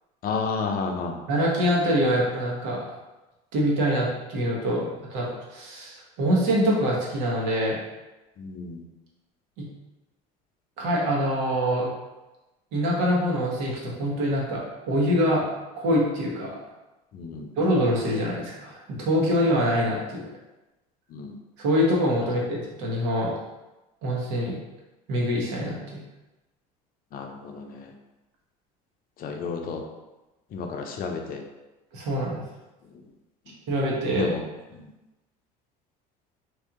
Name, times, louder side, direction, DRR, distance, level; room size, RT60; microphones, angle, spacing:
voice 1, 0.2-1.2 8.4-8.8 17.1-17.5 21.1-21.4 27.1-27.9 29.2-29.8 30.5-31.4 33.5-33.6 34.1-34.5 34.7-34.9, left 4 dB, 50° left, 3 dB, 0.6 m, -31 dB
voice 2, 1.3-2.8 3.5-4.8 5.1-7.8 9.6-9.7 10.8-11.9 12.7-14.6 14.9-15.5 15.7-16.5 17.6-20.3 21.6-23.3 24.0-24.6 25.1-26.0 31.9-32.4 33.7-34.3, equal, 70° right, -3 dB, 1.2 m, -24 dB
3.2 x 2.7 x 3.7 m, 1.1 s
supercardioid pair, 90°, 20 cm